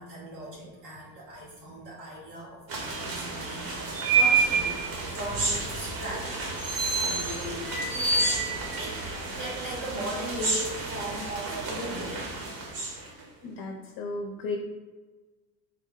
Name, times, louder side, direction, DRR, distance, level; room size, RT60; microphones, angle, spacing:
voice 1, 0.0-6.4 6.9-8.3 8.8-9.1 9.4-12.3, right 1 dB, 90° right, -5 dB, 1.5 m, -39 dB
sound 1, 2.7-13.2, right 4 dB, 45° right, 1.1 m, -29 dB
voice 2, 13.4-14.6, left 3 dB, 55° left, 1 dB, 0.7 m, -34 dB
3.9 x 2.2 x 3.6 m, 1.3 s
hypercardioid pair, 80°, 47 cm